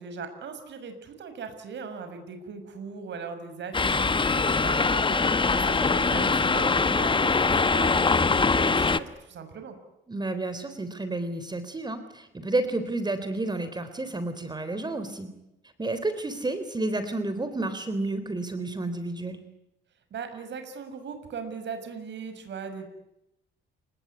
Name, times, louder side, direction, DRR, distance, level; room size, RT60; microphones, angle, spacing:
voice 1, 0.0-9.7 20.1-22.9, right 5 dB, 65° right, 8 dB, 6.2 m, -39 dB
sound 1, 3.7-9.0, left 4 dB, 25° left, 1.3 m, -23 dB
voice 2, 5.9-6.3 10.1-15.3 15.8-19.4, right 2 dB, 20° right, 11 dB, 3.8 m, -31 dB
30.0 x 19.5 x 9.7 m, 0.86 s
cardioid pair, 90°, 20 cm